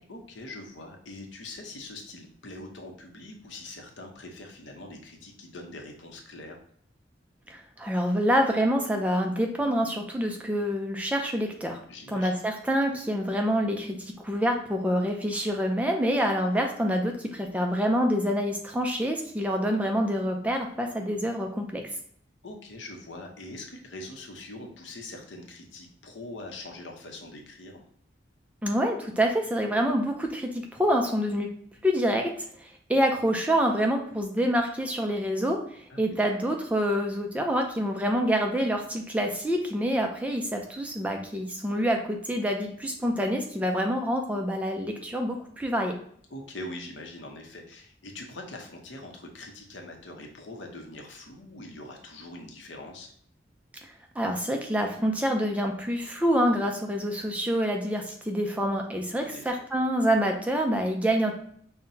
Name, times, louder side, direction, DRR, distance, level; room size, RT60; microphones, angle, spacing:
voice 1, 0.1-6.6 11.9-12.4 22.4-27.8 35.9-36.0 46.3-53.1 59.2-59.5, left 2 dB, 85° left, 2 dB, 0.7 m, -43 dB
voice 2, 7.5-11.8 12.1-21.8 28.6-31.5 31.8-32.3 32.6-46.0 54.2-61.3, equal, 10° right, 3 dB, 0.3 m, -26 dB
5.5 x 2.1 x 2.6 m, 0.62 s
head